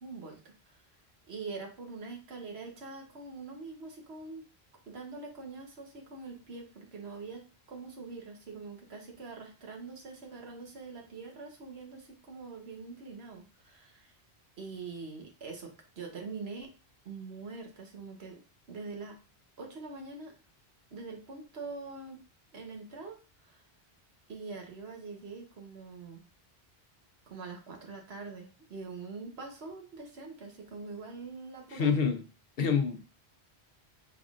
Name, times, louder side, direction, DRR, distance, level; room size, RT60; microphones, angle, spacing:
voice 1, 0.0-0.5 1.3-4.4 4.9-14.1 14.6-16.7 17.0-18.4 18.7-19.1 19.6-20.3 20.9-22.2 22.5-23.2 23.5-23.6 24.3-26.2 27.3-32.0, right 4 dB, 75° right, 2 dB, 1.3 m, -44 dB
voice 2, 31.7-32.2 32.6-33.0, left 6 dB, 65° left, 7 dB, 0.8 m, -27 dB
5.2 x 3.6 x 2.4 m, 0.32 s
omnidirectional pair, 1.1 m